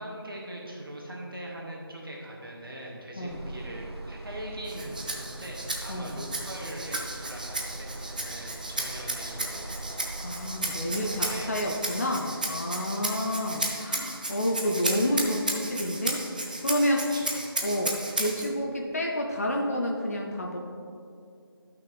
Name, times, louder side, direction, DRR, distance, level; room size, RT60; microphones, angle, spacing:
voice 1, 0.0-9.8 10.9-12.0 12.9-13.1 17.1-17.3, right 1 dB, 60° right, -3 dB, 1.9 m, -41 dB
sound 1, 3.3-11.6, right 2 dB, 85° right, 1.4 m, -41 dB
Rattle (instrument), 4.6-18.5, right 2 dB, 20° right, 0.5 m, -34 dB
voice 2, 10.2-16.2 16.6-17.1 17.6-20.6, equal, 40° left, 0 dB, 0.7 m, -29 dB
12.0 x 5.8 x 3.4 m, 2.5 s
figure-of-eight pair, 160°, 13 cm